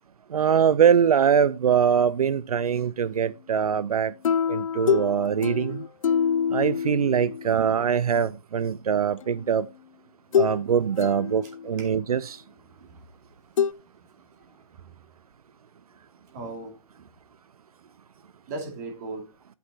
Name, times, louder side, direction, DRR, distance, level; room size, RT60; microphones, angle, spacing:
voice 1, 0.3-4.1 4.5-5.8 6.5-9.7 10.4-12.4, right 7 dB, 80° right, 0.5 m, -23 dB
sound 1, 4.2-7.8 9.2-9.3 10.3-10.6 11.0-11.8 13.6-13.7, left 7 dB, 60° left, 0.4 m, -26 dB
voice 2, 12.8-13.1 14.2-14.7 16.3-16.8 18.5-19.3, right 2 dB, 30° right, 2.5 m, -38 dB
11.5 x 7.9 x 2.8 m
hypercardioid pair, 160°, 19 cm